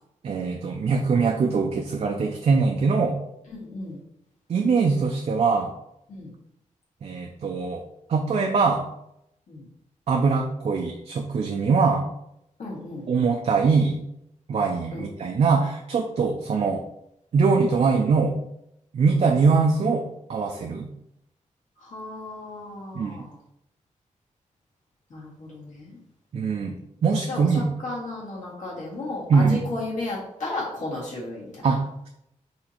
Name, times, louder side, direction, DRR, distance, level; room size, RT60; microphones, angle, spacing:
voice 1, 0.2-3.2 4.5-5.7 7.0-7.8 8.1-8.8 10.1-12.0 13.1-14.0 14.5-16.8 17.3-18.4 18.9-20.9 22.9-23.3 26.3-27.7 29.3-29.7 31.6-32.1, right 4 dB, 55° right, 2 dB, 0.4 m, -22 dB
voice 2, 3.5-4.0 6.1-6.3 9.5-9.7 12.6-13.1 14.9-15.1 21.8-23.3 25.1-26.0 27.3-31.6, left 2 dB, 70° left, -6 dB, 1.8 m, -34 dB
4.2 x 2.8 x 4.3 m, 0.80 s
wide cardioid pair, 145°, 13 cm